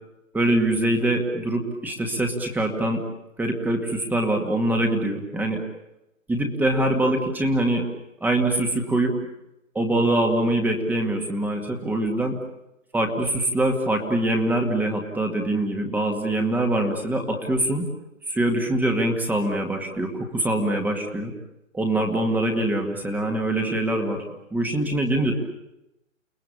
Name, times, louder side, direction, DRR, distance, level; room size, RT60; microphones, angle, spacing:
voice 1, 0.3-3.0 3.4-5.6 6.3-7.9 8.2-9.1 9.7-12.3 12.9-17.9 18.3-21.3 21.7-24.2 24.5-25.3, right 1 dB, 5° right, 3 dB, 2.2 m, -23 dB
30.0 x 19.0 x 8.5 m, 0.91 s
figure-of-eight pair, 140°, 39 cm